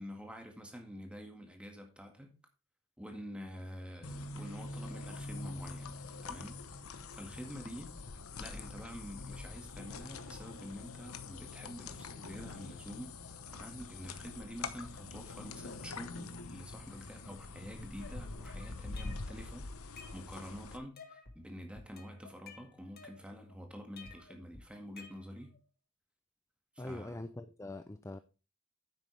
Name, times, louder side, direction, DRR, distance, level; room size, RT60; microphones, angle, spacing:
voice 1, 0.0-2.4 3.0-6.7 7.1-8.0 8.4-13.2 13.5-19.7 20.1-25.6 26.8-27.2, equal, 5° right, 2.0 m, -47 dB
sound 1, 4.0-20.8, left 3 dB, 85° left, 1.0 m, -45 dB
sound 2, 18.0-19.4 19.8-20.6 21.0-21.4 21.7-23.5 24.0-25.6, left 4 dB, 45° left, 1.5 m, -54 dB
voice 2, 26.8-28.2, left 2 dB, 15° left, 0.5 m, -43 dB
10.0 x 8.0 x 3.4 m
head